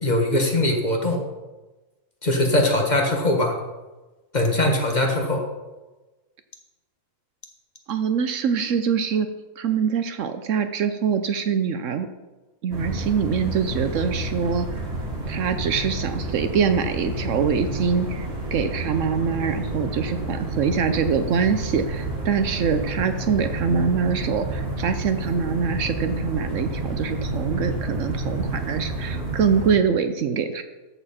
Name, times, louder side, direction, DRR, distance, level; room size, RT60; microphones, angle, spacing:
voice 1, 0.0-1.2 2.2-3.6 4.3-5.4, left 1 dB, 35° left, 2 dB, 1.4 m, -21 dB
voice 2, 7.9-9.3 9.6-12.1 12.6-14.7 15.3-30.6, right 6 dB, 70° right, 9 dB, 1.0 m, -24 dB
sound 1, 12.7-29.7, right 1 dB, 50° right, 2.2 m, -30 dB
13.5 x 7.1 x 4.3 m, 1.2 s
omnidirectional pair, 1.4 m